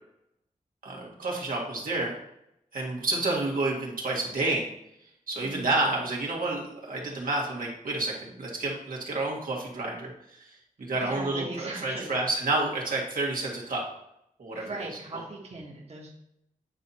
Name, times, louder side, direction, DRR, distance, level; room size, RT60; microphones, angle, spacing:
voice 1, 0.8-2.2 2.7-4.7 5.3-10.5 10.8-13.8 14.4-14.8 15.1-15.2, right 2 dB, 85° right, -3 dB, 1.8 m, -29 dB
voice 2, 5.4-5.7 10.9-12.2 14.5-16.1, right 2 dB, 50° right, -3 dB, 1.5 m, -39 dB
8.9 x 4.1 x 4.3 m, 0.79 s
wide cardioid pair, 100°, 14 cm